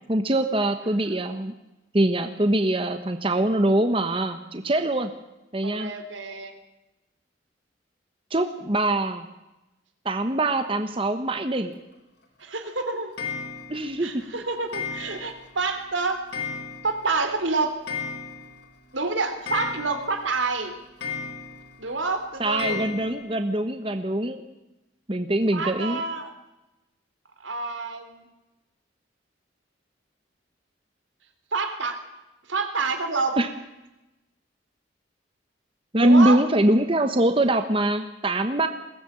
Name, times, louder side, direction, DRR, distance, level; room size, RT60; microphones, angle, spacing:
voice 1, 0.1-1.5 1.9-5.1 5.5-5.9 8.3-9.2 10.0-11.7 13.7-14.3 22.4-24.4 25.1-26.0 33.4-33.5 35.9-38.7, right 1 dB, 30° right, 8 dB, 1.2 m, -23 dB
voice 2, 5.6-6.5 12.4-13.1 14.0-16.2 16.8-17.7 18.9-20.7 21.8-22.8 25.5-26.3 27.4-28.3 31.5-32.0 32.5-33.4 36.0-36.4, right 3 dB, 80° right, 8 dB, 3.4 m, -28 dB
Clock, 13.2-13.9 14.7-15.5 15.8-15.9 16.3-17.1 17.3-17.4 17.7-18.6 19.0-19.1 19.5-20.3 21.0-21.7 22.6-23.1, left 5 dB, 65° left, 4.9 m, -34 dB
22.0 x 18.0 x 8.7 m, 1.0 s
head